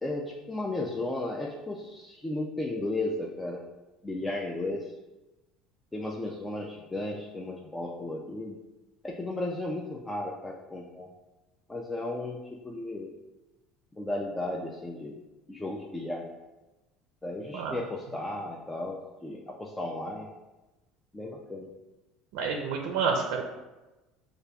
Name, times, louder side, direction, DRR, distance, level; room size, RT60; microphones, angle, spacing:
voice 1, 0.0-3.6 4.0-4.9 5.9-8.6 9.0-11.1 11.7-13.1 13.9-15.2 15.5-16.3 17.2-20.3 21.1-21.7, left 2 dB, 10° left, -1 dB, 0.4 m, -34 dB
voice 2, 22.3-23.4, right 5 dB, 80° right, 2 dB, 0.5 m, -29 dB
6.5 x 2.4 x 2.3 m, 1.1 s
cardioid pair, 130°, 0 cm